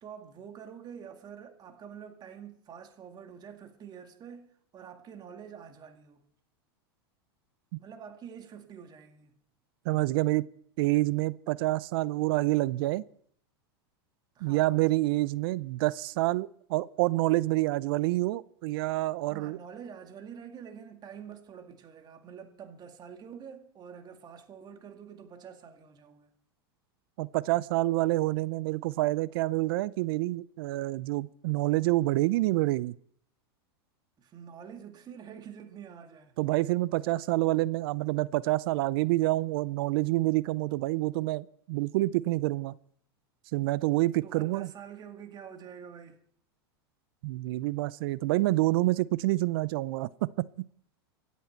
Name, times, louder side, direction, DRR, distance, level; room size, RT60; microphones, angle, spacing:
voice 1, 0.0-6.2 7.8-9.4 14.4-14.7 19.3-26.3 34.2-36.4 44.2-46.2, right 7 dB, 30° right, 2.1 m, -47 dB
voice 2, 9.9-10.5 10.8-13.0 14.4-19.6 27.2-32.9 36.4-42.7 43.5-44.7 47.2-50.3, right 19 dB, 65° right, 0.5 m, -27 dB
25.0 x 8.4 x 4.5 m
hypercardioid pair, 110°, 13 cm